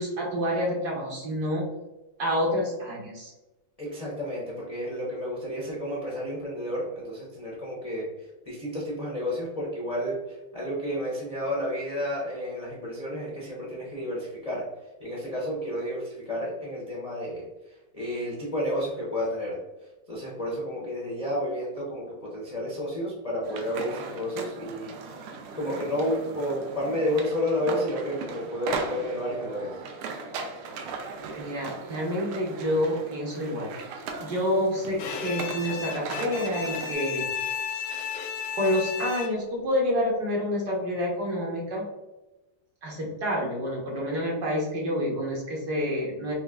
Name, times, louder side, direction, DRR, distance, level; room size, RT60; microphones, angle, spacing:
voice 1, 0.0-1.7 2.2-3.3 31.4-37.3 38.5-41.9 42.8-46.3, equal, 60° right, -3 dB, 1.3 m, -28 dB
voice 2, 3.8-14.6 15.0-19.6 20.1-25.3 25.5-29.8, equal, 60° left, -6 dB, 0.3 m, -31 dB
sound 1, 23.4-36.9, right 4 dB, 80° right, 1.4 m, -38 dB
Bowed string instrument, 35.0-39.6, left 7 dB, 80° left, 1.4 m, -33 dB
5.4 x 2.5 x 2.4 m, 1.1 s
omnidirectional pair, 2.4 m